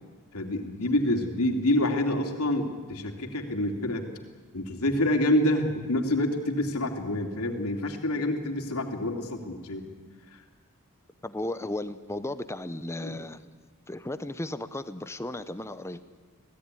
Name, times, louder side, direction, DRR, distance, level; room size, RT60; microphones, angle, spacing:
voice 1, 0.3-4.0 4.5-9.9 10.3-10.4 13.0-13.2, left 1 dB, 75° left, 4 dB, 2.9 m, -27 dB
voice 2, 11.2-13.4 13.9-16.0, left 1 dB, 10° left, 12 dB, 0.7 m, -35 dB
26.0 x 17.0 x 9.8 m, 1.4 s
head